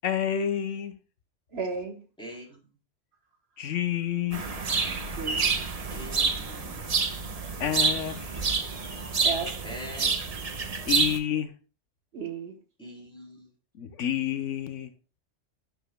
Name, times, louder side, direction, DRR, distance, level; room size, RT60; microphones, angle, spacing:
voice 1, 0.0-0.9 3.6-4.4 7.6-8.4 10.9-11.5 13.7-14.9, left 9 dB, 80° left, 1.2 m, -29 dB
voice 2, 1.5-2.0 5.2-5.5 9.2-9.6 12.1-12.5, right 5 dB, 60° right, 1.2 m, -33 dB
voice 3, 2.2-2.6 5.9-6.8 9.6-10.1 12.8-13.5, equal, 5° left, 3.4 m, -43 dB
sound 1, 4.3-11.2, right 4 dB, 35° right, 0.8 m, -28 dB
11.0 x 6.9 x 2.2 m
omnidirectional pair, 1.3 m